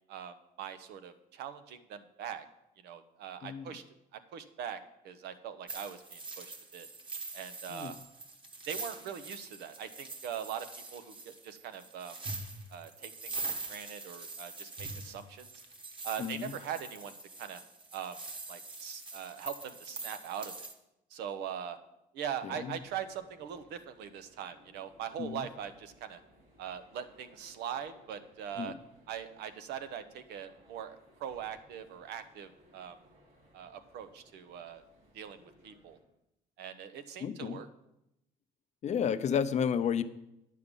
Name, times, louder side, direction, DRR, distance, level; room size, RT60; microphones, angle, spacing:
voice 1, 0.1-2.5 2.8-3.8 4.1-4.8 5.0-6.9 7.3-7.9 8.7-12.2 12.7-13.4 13.7-15.5 16.0-17.6 17.9-18.2 18.5-20.5 21.1-21.8 22.1-26.2 26.6-28.7 29.1-33.0 33.5-34.8 35.1-35.4 35.6-36.0 36.6-37.7, right 9 dB, 80° right, 10 dB, 0.9 m, -41 dB
voice 2, 3.4-3.7 7.7-7.9 16.2-16.5 22.4-22.8 25.2-25.5 28.6-28.8 37.2-37.6 38.8-40.0, left 7 dB, 45° left, 11 dB, 0.6 m, -32 dB
sound 1, 5.7-20.7, right 3 dB, 30° right, 1.3 m, -43 dB
sound 2, 22.6-36.0, equal, 55° right, 4.6 m, -63 dB
10.0 x 6.6 x 5.4 m, 0.87 s
cardioid pair, 110°, 17 cm